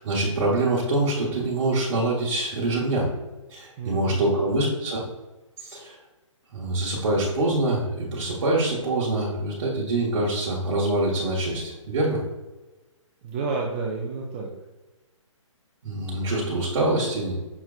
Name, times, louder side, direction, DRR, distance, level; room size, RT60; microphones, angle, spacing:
voice 1, 0.0-3.1 3.5-5.0 5.6-6.0 6.5-12.2 15.8-17.3, right 2 dB, 60° right, -5 dB, 1.1 m, -25 dB
voice 2, 3.8-4.7 13.2-14.5, right 4 dB, 20° right, -2 dB, 0.4 m, -30 dB
5.9 x 3.2 x 2.3 m, 1.1 s
hypercardioid pair, 150°, 17 cm